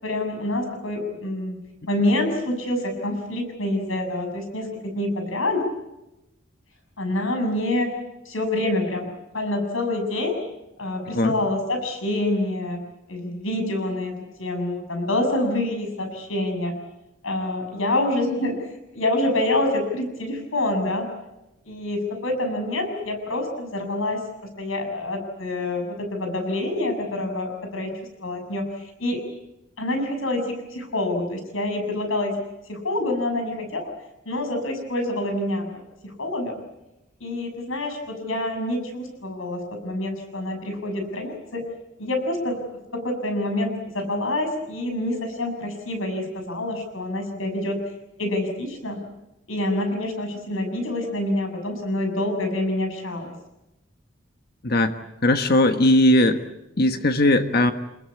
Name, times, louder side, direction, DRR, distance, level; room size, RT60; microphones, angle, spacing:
voice 1, 0.0-1.6 1.9-5.7 7.0-7.9 8.2-10.4 10.8-12.8 13.1-16.8 17.2-18.6 18.9-21.1 21.6-27.9 28.2-29.2 29.8-32.4 32.7-33.9 34.2-35.7 36.0-36.5 37.2-41.6 42.0-42.6 42.9-47.8 48.2-49.0 49.5-53.3, left 1 dB, 90° left, 5 dB, 6.9 m, -26 dB
voice 2, 54.6-54.9 55.2-56.4 56.8-57.7, left 1 dB, 50° left, 8 dB, 1.4 m, -18 dB
27.5 x 21.5 x 8.6 m, 0.94 s
head